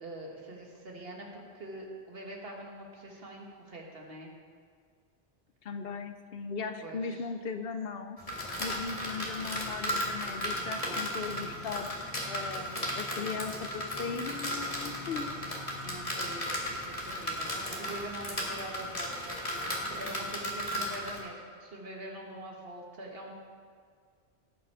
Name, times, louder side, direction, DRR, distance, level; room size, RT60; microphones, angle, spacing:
voice 1, 0.0-4.3 6.8-7.2 11.4-11.6 15.8-23.3, right 1 dB, 60° right, 0 dB, 1.9 m, -44 dB
voice 2, 5.6-11.9 12.3-15.4, left 5 dB, 65° left, 8 dB, 0.9 m, -38 dB
sound 1, 8.2-21.2, equal, 35° left, 1.8 m, -35 dB
17.5 x 5.9 x 4.8 m, 2.1 s
omnidirectional pair, 1.1 m